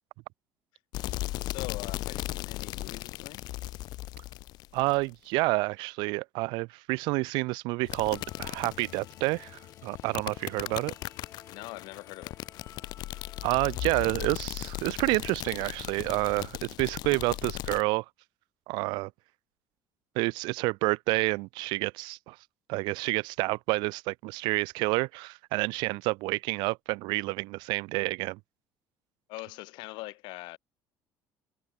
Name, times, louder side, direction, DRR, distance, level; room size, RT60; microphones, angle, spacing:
sound 1, 0.9-5.1 7.9-17.8, left 17 dB, 65° left, 1.0 m, -37 dB
voice 1, 1.4-3.4 10.6-10.8 11.5-12.4 29.3-30.6, left 23 dB, 80° left, 1.9 m, -42 dB
voice 2, 4.7-10.9 13.4-18.0 18.7-19.1 20.2-22.4 22.7-28.4, right 25 dB, 80° right, 0.4 m, -29 dB
sound 2, 8.1-14.0, left 8 dB, 35° left, 2.6 m, -55 dB
cardioid pair, 145°, 8 cm